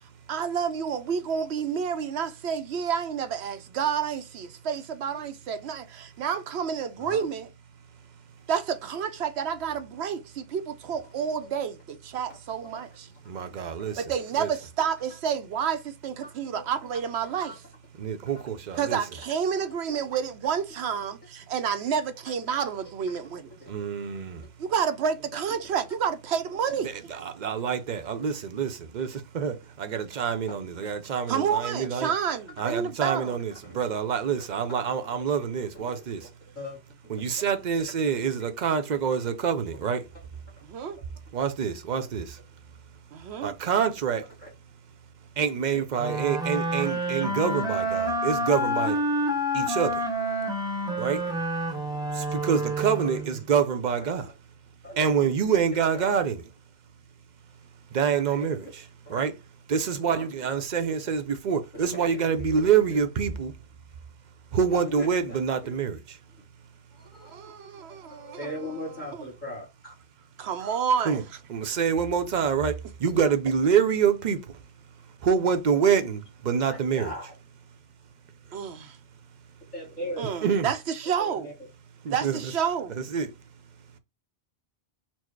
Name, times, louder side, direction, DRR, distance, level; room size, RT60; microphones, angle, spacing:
voice 1, 0.3-7.5 8.5-13.1 14.0-17.6 18.8-23.5 24.6-26.9 31.3-33.4 40.6-41.0 43.1-43.5 60.0-60.2 67.2-68.5 69.1-69.3 70.4-71.2 78.5-79.0 80.2-81.5 82.1-82.9, right 7 dB, 80° right, 0.9 m, -29 dB
voice 2, 12.6-13.2 13.6-14.2 16.2-16.6 17.3-17.6 23.6-23.7 33.6-33.8 34.5-34.7 35.2-35.3 35.7-36.3 36.5-36.8 37.7-37.8 38.7-38.8 40.9-41.0 44.4-44.5 45.4-46.9 47.2-47.6 48.5-48.6 50.8-51.0 53.0-53.1 53.5-53.6 54.0-54.3 54.8-55.5 55.8-56.1 58.1-58.5 59.0-59.3 60.0-60.3 60.7-60.8 61.7-63.2 64.5-65.4 65.6-65.7 66.9-69.9 72.5-72.6 76.6-77.3 79.7-80.4 81.2-81.5, equal, 45° left, 1.6 m, -41 dB
voice 3, 13.3-14.0 14.4-14.5 18.0-19.0 23.7-24.5 26.8-32.1 32.6-36.3 37.1-40.1 41.3-42.4 43.4-44.3 45.4-49.0 49.5-50.0 51.0-51.2 52.1-54.3 55.0-56.4 57.9-59.3 59.7-63.5 64.5-66.2 71.1-71.2 71.5-74.6 75.2-77.1 80.4-80.7 82.0-82.5 83.0-83.3, right 7 dB, 50° right, 0.6 m, -26 dB
sound 1, 46.0-53.4, equal, 5° right, 0.7 m, -28 dB
4.4 x 2.1 x 4.4 m
omnidirectional pair, 1.1 m